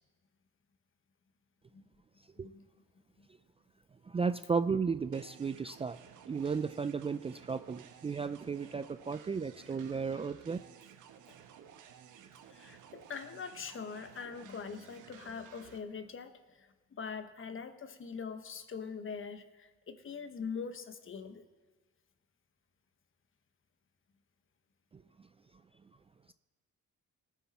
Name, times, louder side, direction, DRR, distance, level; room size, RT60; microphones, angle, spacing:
voice 1, 4.1-6.0 6.3-10.6 24.9-25.0, right 5 dB, 20° right, 12 dB, 0.3 m, -34 dB
sound 1, 5.1-15.8, right 8 dB, 85° right, 1.1 m, -55 dB
voice 2, 12.5-21.5, left 5 dB, 45° left, 10 dB, 1.1 m, -43 dB
19.0 x 9.3 x 4.2 m, 1.3 s
cardioid pair, 90°, 30 cm